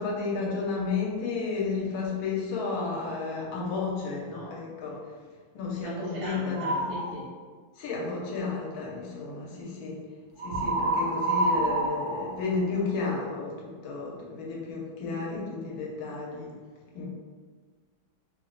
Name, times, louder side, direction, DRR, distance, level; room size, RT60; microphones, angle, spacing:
voice 1, 0.0-5.1 5.5-6.9 7.8-10.0 10.4-16.5 16.9-17.1, left 4 dB, 80° left, -3 dB, 1.5 m, -32 dB
voice 2, 5.8-7.3, right 1 dB, 40° right, -7 dB, 0.4 m, -37 dB
sound 1, 6.5-7.1 10.4-13.1, right 2 dB, 75° right, 0.6 m, -28 dB
3.6 x 2.1 x 3.8 m, 1.5 s
omnidirectional pair, 2.2 m